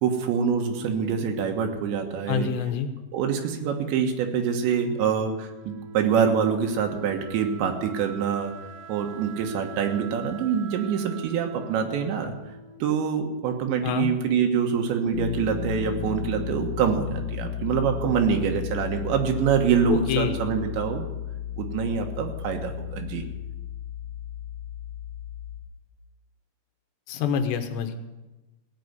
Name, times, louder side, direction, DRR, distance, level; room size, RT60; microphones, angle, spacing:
voice 1, 0.0-2.5 3.1-8.5 8.9-12.3 12.8-21.1 21.6-23.2, right 7 dB, 85° right, 3 dB, 3.7 m, -25 dB
voice 2, 2.3-2.9 13.8-14.1 19.9-20.4 27.1-28.0, left 7 dB, 80° left, 7 dB, 3.3 m, -26 dB
Wind instrument woodwind instrument, 4.5-13.3, right 5 dB, 70° right, 3.1 m, -44 dB
sound 1, 15.1-25.6, left 9 dB, 55° left, 2.4 m, -34 dB
17.0 x 7.7 x 9.4 m, 1.1 s
omnidirectional pair, 5.0 m